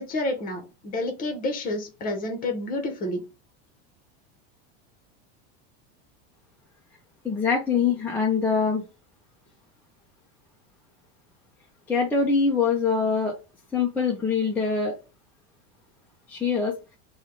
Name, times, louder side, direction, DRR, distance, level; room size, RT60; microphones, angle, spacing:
voice 1, 0.0-3.2, left 2 dB, 25° left, 5 dB, 0.9 m, -29 dB
voice 2, 7.2-8.8 11.9-13.3 13.7-15.0 16.3-16.7, left 5 dB, 5° left, -3 dB, 0.4 m, -23 dB
3.3 x 2.3 x 4.4 m, 0.30 s
supercardioid pair, 155°, 32 cm